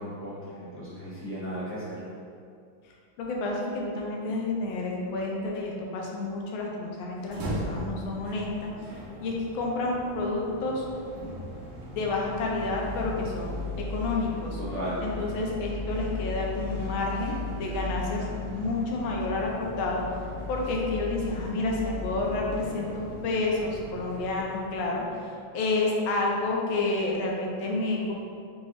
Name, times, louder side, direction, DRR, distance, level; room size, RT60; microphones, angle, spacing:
voice 1, 0.0-2.0 14.6-15.0, equal, 15° left, -12 dB, 0.5 m, -35 dB
voice 2, 2.8-10.8 11.2-11.4 11.9-14.6 15.0-25.3 25.5-28.1, left 2 dB, 80° left, -2 dB, 1.4 m, -30 dB
sound 1, 7.2-25.3, left 2 dB, 85° right, 1.5 m, -37 dB
5.5 x 2.0 x 2.9 m, 2.4 s
omnidirectional pair, 2.2 m